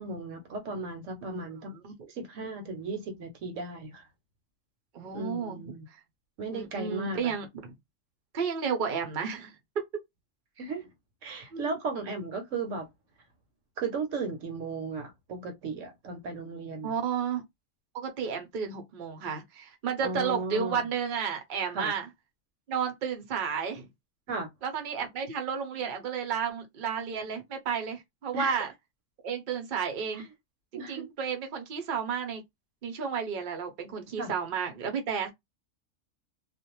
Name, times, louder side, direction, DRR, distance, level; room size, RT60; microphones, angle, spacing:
voice 1, 0.0-1.7 2.1-4.0 5.1-5.9 6.4-7.3 10.6-10.9 11.2-12.9 13.8-16.9 20.0-20.8 21.7-21.9 24.3-24.5 28.3-28.7 30.7-31.1 34.2-34.3, right 3 dB, 65° right, 1.0 m, -35 dB
voice 2, 4.9-5.7 6.5-7.7 8.3-9.5 11.5-11.8 16.8-17.4 17.9-22.1 22.7-23.9 24.6-28.7 29.2-30.3 30.7-32.4 32.8-35.3, right 6 dB, 50° right, 0.6 m, -32 dB
2.5 x 2.1 x 2.9 m
omnidirectional pair, 1.5 m